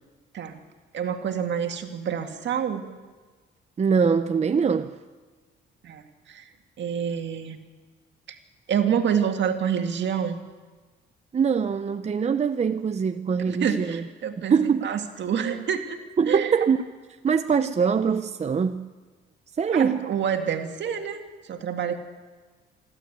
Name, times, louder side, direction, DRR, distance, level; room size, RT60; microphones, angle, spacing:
voice 1, 0.9-2.9 5.8-6.5 6.8-7.6 8.7-10.4 13.5-14.5 14.8-16.0 16.3-16.5 19.7-21.2 21.5-22.0, right 8 dB, 65° right, 2.1 m, -27 dB
voice 2, 3.8-5.0 11.3-14.1 14.5-14.9 16.2-16.8 17.2-18.9 19.6-20.1, right 6 dB, 35° right, 0.7 m, -23 dB
26.5 x 12.0 x 8.3 m
cardioid pair, 90°, 20 cm